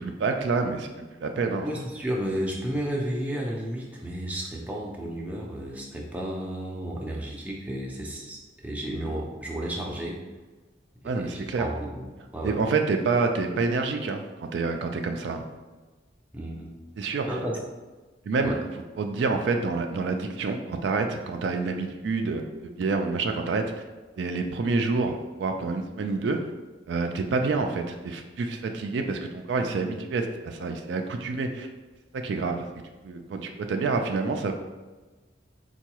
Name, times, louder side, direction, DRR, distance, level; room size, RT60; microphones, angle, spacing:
voice 1, 0.0-1.7 11.0-11.7 12.4-15.4 17.0-17.3 18.3-18.5 19.0-23.6 24.2-26.4 26.9-31.7 32.2-32.6 33.0-34.5, right 4 dB, 65° right, 5 dB, 0.3 m, -27 dB
voice 2, 1.6-10.2 11.0-12.1 12.3-12.6 16.3-16.7 17.3-17.6 18.4-18.6, right 1 dB, 10° right, -3 dB, 0.5 m, -32 dB
4.5 x 2.3 x 2.9 m, 1.2 s
head